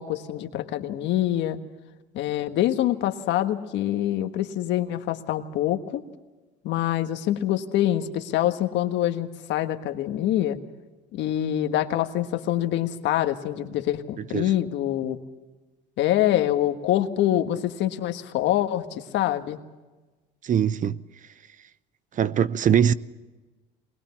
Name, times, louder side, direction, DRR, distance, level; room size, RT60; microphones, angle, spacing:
voice 1, 0.0-1.6 2.1-6.0 6.6-10.6 11.1-15.2 16.0-19.6, left 12 dB, 65° left, 1.5 m, -25 dB
voice 2, 20.4-21.0 22.2-22.9, right 8 dB, 40° right, 0.7 m, -21 dB
21.0 x 21.0 x 7.1 m
supercardioid pair, 95°, 20 cm